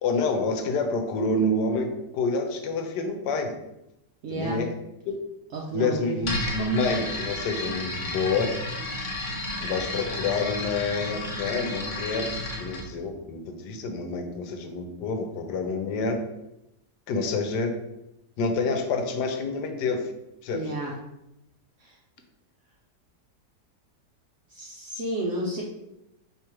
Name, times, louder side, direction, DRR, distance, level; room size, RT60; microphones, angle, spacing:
voice 1, 0.0-3.6 4.3-4.7 5.1-5.2 5.7-8.5 9.6-16.2 17.1-17.7 18.4-20.1 20.4-20.7, left 3 dB, 75° left, 5 dB, 1.2 m, -28 dB
voice 2, 4.2-4.6 5.5-6.2 20.5-20.9 21.8-22.0 24.5-25.6, right 1 dB, 65° right, -2 dB, 0.8 m, -31 dB
sound 1, 6.2-12.9, left 2 dB, 50° left, 0.6 m, -32 dB
4.8 x 3.1 x 3.0 m, 0.87 s
omnidirectional pair, 1.8 m